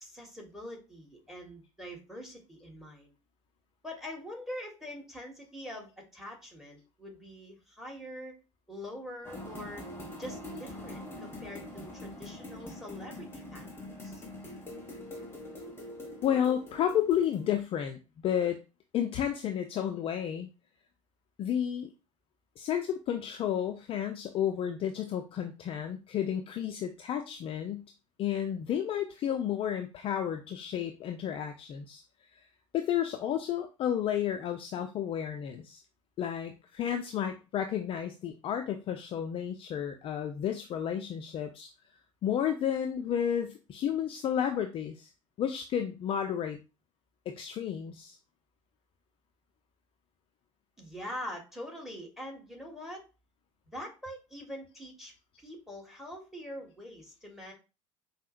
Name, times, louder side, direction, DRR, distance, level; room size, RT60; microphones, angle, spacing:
voice 1, 0.0-3.1 3.8-8.3 8.7-9.8 10.2-13.7 14.0-14.2 50.8-53.1 53.7-55.1 55.4-57.5, equal, ahead, 1 dB, 1.5 m, -44 dB
sound 1, 9.2-17.6, left 1 dB, 15° left, 1.1 m, -44 dB
voice 2, 16.2-18.6 18.9-20.5 21.4-21.9 22.6-27.9 28.2-32.0 32.7-35.8 36.2-41.7 42.2-45.1 45.4-46.6 47.3-48.2, left 9 dB, 35° left, 5 dB, 0.4 m, -31 dB
5.4 x 2.0 x 2.5 m, 0.29 s
figure-of-eight pair, 65°, 16 cm